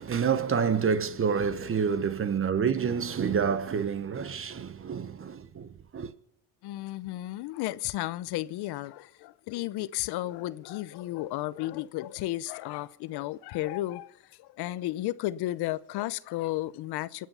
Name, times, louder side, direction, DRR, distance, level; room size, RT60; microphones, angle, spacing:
voice 1, 0.0-6.1, right 6 dB, 35° right, 1.1 m, -28 dB
voice 2, 6.6-17.3, left 16 dB, 80° left, 0.7 m, -33 dB
25.0 x 9.4 x 5.6 m
cardioid pair, 110°, 39 cm